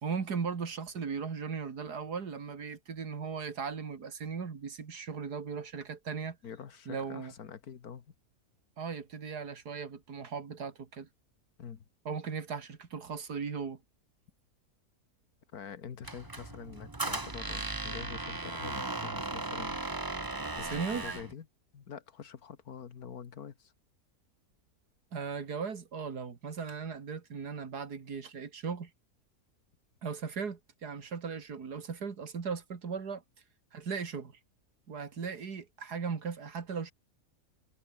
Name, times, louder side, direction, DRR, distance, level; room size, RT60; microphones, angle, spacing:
voice 1, 0.0-6.4 6.9-7.3 8.8-11.1 12.1-13.8 20.7-21.1 25.1-28.9 30.0-33.2 33.7-34.3 34.9-36.9, right 5 dB, 85° right, 2.7 m, -37 dB
voice 2, 6.4-8.1 11.6-11.9 15.5-19.8 20.1-21.5 21.7-23.7, left 7 dB, 70° left, 2.0 m, -46 dB
Squeak, 16.0-21.3, right 2 dB, 15° right, 1.0 m, -37 dB
omnidirectional pair, 1.7 m